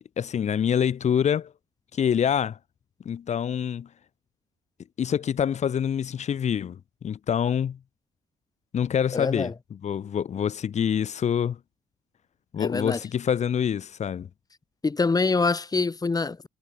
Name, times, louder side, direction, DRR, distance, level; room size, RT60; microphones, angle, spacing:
voice 1, 0.0-1.5 1.9-2.6 3.0-3.9 5.0-7.8 8.7-9.5 9.8-11.6 12.5-14.3, left 8 dB, 55° left, 2.7 m, -26 dB
voice 2, 9.1-9.5 12.6-13.0 14.8-16.5, left 4 dB, 25° left, 2.6 m, -25 dB
supercardioid pair, 60°, 14 cm